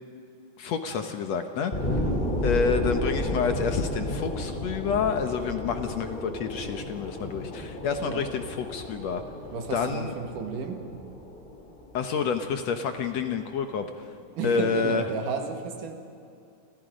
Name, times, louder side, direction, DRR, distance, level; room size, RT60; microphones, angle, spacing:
voice 1, 0.6-1.7 2.4-9.2 9.7-10.1 11.9-14.1 14.4-15.0, left 6 dB, 65° left, 7 dB, 2.0 m, -28 dB
sound 1, 1.7-12.7 13.2-13.3, left 1 dB, 15° left, 3.1 m, -32 dB
voice 2, 9.5-10.8 14.4-16.0, right 5 dB, 75° right, 5 dB, 3.4 m, -32 dB
29.5 x 25.5 x 5.2 m, 2.6 s
omnidirectional pair, 3.8 m